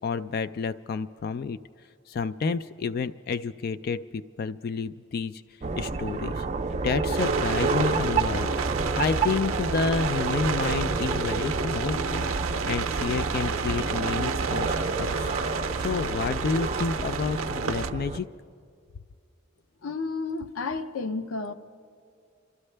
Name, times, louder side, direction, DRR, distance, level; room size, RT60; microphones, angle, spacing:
voice 1, 0.0-1.6 2.1-5.4 5.7-6.5 6.8-8.5 9.0-12.3 12.7-15.3 15.8-18.3, left 5 dB, 50° left, 13 dB, 0.3 m, -30 dB
sound 1, 5.6-18.2, right 3 dB, 35° right, 0.5 m, -29 dB
sound 2, 7.2-17.9, right 5 dB, 90° right, 0.5 m, -31 dB
voice 2, 19.8-21.5, left 3 dB, 90° left, 9 dB, 0.7 m, -31 dB
27.5 x 12.5 x 3.3 m, 2.4 s
head